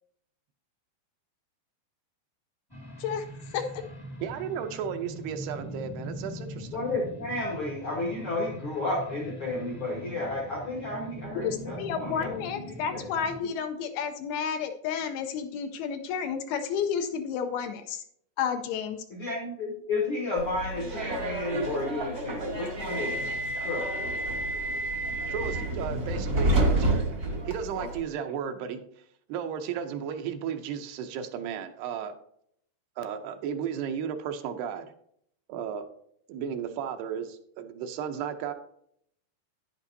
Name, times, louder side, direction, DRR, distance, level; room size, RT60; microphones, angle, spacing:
sound 1, 2.7-13.4, right 1 dB, 15° left, 0.8 m, -41 dB
voice 1, 3.5-3.8 11.4-18.0 18.4-19.0 25.4-25.5, left 7 dB, 80° left, 6 dB, 2.4 m, -31 dB
voice 2, 4.2-6.9 25.3-27.2 27.5-28.8 29.3-32.1 33.0-34.9 35.5-35.9 36.3-38.5, right 8 dB, 80° right, 7 dB, 2.6 m, -34 dB
voice 3, 6.7-12.3 12.9-13.0 13.4-13.5 19.1-23.2 23.6-23.9 27.7-27.9, left 2 dB, 60° left, -1 dB, 1.4 m, -32 dB
Subway metro underground, 20.4-28.0, right 2 dB, 50° right, 1.1 m, -29 dB
10.5 x 10.0 x 2.7 m, 0.69 s
omnidirectional pair, 4.8 m